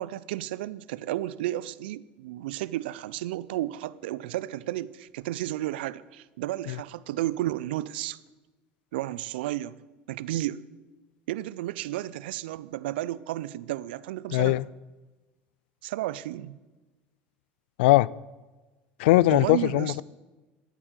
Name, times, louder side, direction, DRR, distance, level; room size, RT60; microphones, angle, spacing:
voice 1, 0.0-8.2 8.9-9.7 10.1-10.6 11.3-14.6 15.8-16.6 19.3-20.0, right 15 dB, 80° right, 0.5 m, -32 dB
voice 2, 14.3-14.6 17.8-18.1 19.0-20.0, left 18 dB, 75° left, 0.4 m, -20 dB
13.0 x 8.3 x 9.0 m
hypercardioid pair, 85°, 6 cm